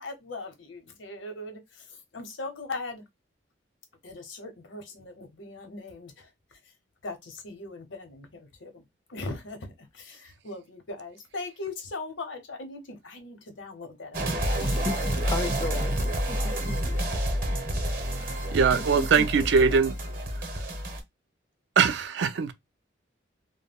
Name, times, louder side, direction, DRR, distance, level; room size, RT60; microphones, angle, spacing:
voice 1, 0.0-3.0 4.0-6.6 7.0-14.7, left 2 dB, 80° left, 0.7 m, -40 dB
sound 1, 14.1-21.0, equal, 45° right, 0.7 m, -29 dB
voice 2, 14.5-17.2 18.7-19.3 19.6-19.7, left 3 dB, 25° left, 0.3 m, -36 dB
voice 3, 18.5-19.9 21.8-22.5, right 5 dB, 65° right, 0.3 m, -21 dB
2.2 x 2.1 x 3.4 m
head